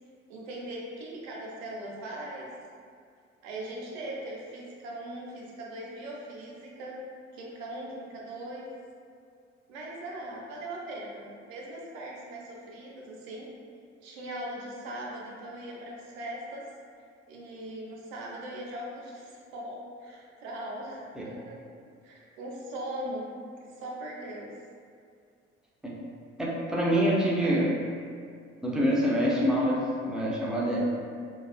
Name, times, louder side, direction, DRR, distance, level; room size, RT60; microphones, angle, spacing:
voice 1, 0.3-2.5 3.4-7.0 7.3-8.7 9.7-13.5 14.0-16.6 17.3-21.6 22.0-23.3 23.6-24.5 27.3-27.6, right 1 dB, 65° right, -3 dB, 0.6 m, -40 dB
voice 2, 26.4-27.7 28.6-30.9, equal, ahead, -5 dB, 0.4 m, -26 dB
2.3 x 2.2 x 2.3 m, 2.2 s
figure-of-eight pair, 50°, 34 cm